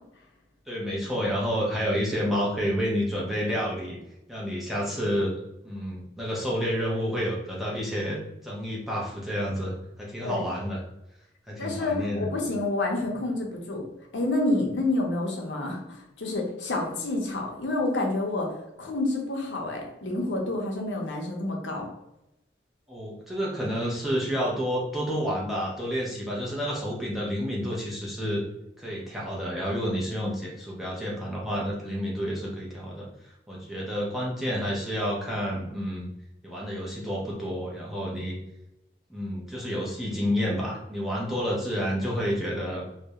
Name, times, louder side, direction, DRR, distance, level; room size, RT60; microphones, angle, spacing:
voice 1, 0.7-4.0 4.3-5.3 5.6-8.2 8.4-10.8 11.5-12.3 22.9-28.4 28.8-33.1 33.5-36.1 36.4-38.4 39.1-42.8, equal, ahead, -5 dB, 0.5 m, -29 dB
voice 2, 11.6-13.8 14.1-21.9, left 2 dB, 85° left, 0 dB, 0.6 m, -28 dB
2.3 x 2.0 x 2.8 m, 0.86 s
head